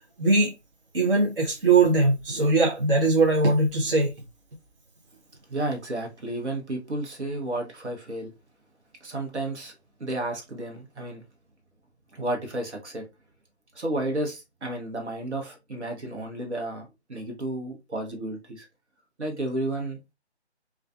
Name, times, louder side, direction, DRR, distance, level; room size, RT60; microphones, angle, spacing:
voice 1, 0.2-0.5 0.9-4.1, right 3 dB, 55° right, 0.7 m, -21 dB
voice 2, 5.5-8.3 9.0-9.7 10.0-11.2 12.1-13.1 13.7-18.7 19.2-20.0, right 1 dB, 75° right, 1.1 m, -32 dB
2.4 x 2.3 x 2.4 m
figure-of-eight pair, 180°, 34 cm